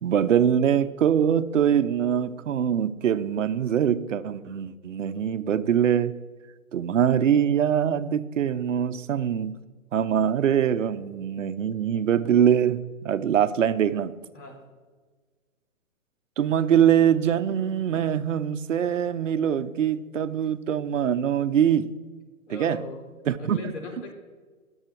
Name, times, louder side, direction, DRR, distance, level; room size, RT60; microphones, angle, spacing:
voice 1, 0.0-6.1 6.7-9.6 9.9-14.2 16.4-22.0 22.5-22.8 23.3-23.7, right 9 dB, 60° right, 0.8 m, -23 dB
voice 2, 22.5-23.0 23.4-24.1, left 2 dB, 55° left, 3.6 m, -38 dB
21.5 x 8.0 x 4.6 m
hypercardioid pair, 165°, 42 cm